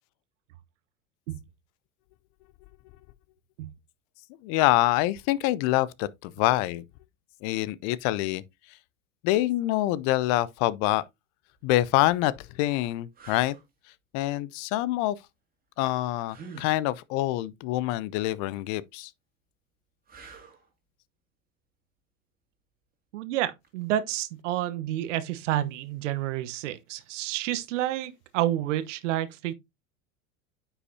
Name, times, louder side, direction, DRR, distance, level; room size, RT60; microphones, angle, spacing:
voice 1, 4.4-6.8 7.4-8.4 9.2-11.0 11.6-13.6 14.1-15.2 15.8-19.1, left 16 dB, 45° left, 0.7 m, -26 dB
sound 1, 11.6-11.8 12.4-12.5 13.1-13.6 16.3-16.8 20.1-20.7 23.6-23.8, right 5 dB, 20° right, 2.6 m, -46 dB
voice 2, 23.1-29.5, right 13 dB, 60° right, 1.1 m, -29 dB
9.4 x 5.7 x 2.7 m
figure-of-eight pair, 85°, 41 cm